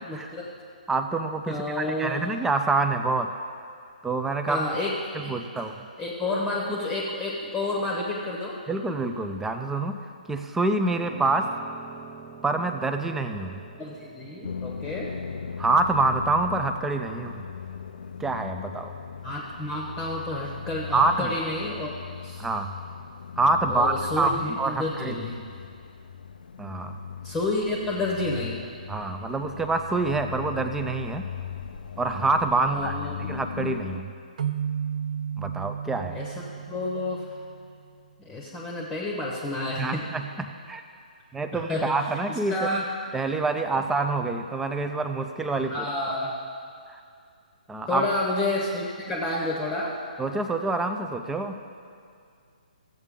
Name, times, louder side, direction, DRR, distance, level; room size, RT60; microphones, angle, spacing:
voice 1, 0.1-0.5 1.5-2.2 4.5-4.9 5.2-5.6 6.0-8.6 13.8-15.1 19.2-21.9 22.2-22.5 23.7-25.4 27.2-28.6 32.6-33.1 36.1-36.3 36.7-37.4 38.2-40.0 41.7-41.9 42.3-42.8 43.7-43.8 45.7-46.4 47.9-50.0, left 2 dB, 10° left, -3 dB, 1.1 m, -30 dB
voice 2, 0.9-3.3 4.0-4.6 5.1-5.9 8.7-10.0 10.3-11.5 12.4-13.6 15.6-17.4 18.2-18.9 20.9-21.3 22.4-22.7 23.4-25.2 26.6-27.0 28.9-31.3 32.0-32.9 33.2-34.1 35.4-36.2 39.8-40.8 41.3-42.7 43.1-45.9 46.9-47.0 47.7-48.1 50.2-51.6, right 3 dB, 5° right, 7 dB, 0.5 m, -26 dB
Piano, 11.0-21.1, right 6 dB, 40° right, 1.0 m, -49 dB
sound 1, 14.4-34.0, left 7 dB, 80° left, 0.4 m, -38 dB
sound 2, 34.4-37.9, right 8 dB, 60° right, 0.5 m, -33 dB
14.5 x 8.0 x 3.7 m, 2.3 s
hypercardioid pair, 140°, 5 cm